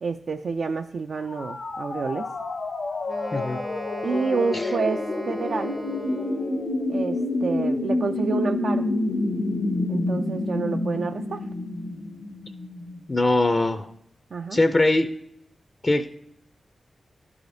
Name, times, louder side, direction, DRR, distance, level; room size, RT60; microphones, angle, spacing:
voice 1, 0.0-2.3 4.0-5.7 6.9-8.9 9.9-11.4 14.3-14.6, right 5 dB, 75° right, 5 dB, 0.3 m, -29 dB
sound 1, 1.2-13.0, left 2 dB, 70° left, 0.9 m, -28 dB
Wind instrument woodwind instrument, 3.0-6.8, right 1 dB, 60° right, 0.7 m, -39 dB
voice 2, 13.1-13.9 14.5-15.1 15.8-16.1, left 2 dB, 35° left, 8 dB, 0.4 m, -21 dB
11.5 x 4.9 x 2.6 m, 0.75 s
cardioid pair, 65°, 0 cm